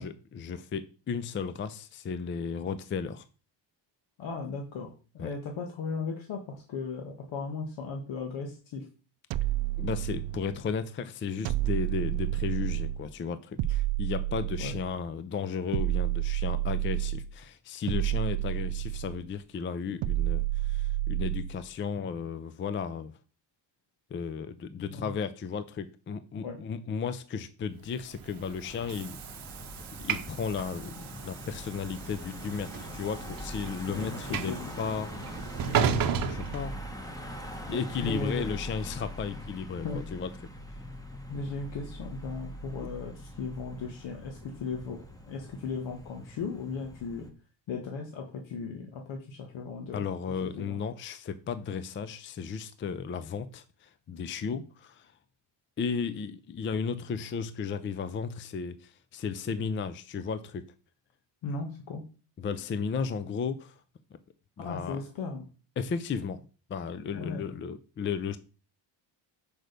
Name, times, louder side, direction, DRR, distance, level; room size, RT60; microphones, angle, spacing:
voice 1, 0.0-3.2 5.2-5.3 9.8-23.1 24.1-29.2 30.0-35.3 35.7-36.7 37.7-40.3 49.9-55.1 55.8-60.7 62.4-63.7 64.6-65.0 65.8-66.4 66.7-68.4, left 6 dB, 25° left, 0.4 m, -34 dB
voice 2, 4.2-8.9 14.6-14.7 24.8-25.1 26.4-26.6 33.9-34.2 34.5-34.7 37.7-38.5 39.8-40.0 41.3-45.0 45.3-47.3 47.7-50.0 50.4-50.8 61.4-62.0 64.6-65.4 67.1-67.4, left 4 dB, 80° left, 1.5 m, -36 dB
sound 1, 9.3-10.6 11.5-13.1 13.6-15.0 15.7-17.3 17.9-19.3 20.0-21.6, right 15 dB, 80° right, 0.6 m, -30 dB
Train / Sliding door, 28.0-37.3, right 7 dB, 50° right, 0.8 m, -34 dB
Car passing by / Engine, 28.6-47.3, equal, 10° left, 1.0 m, -42 dB
6.1 x 5.1 x 6.6 m
cardioid pair, 165°, 45 cm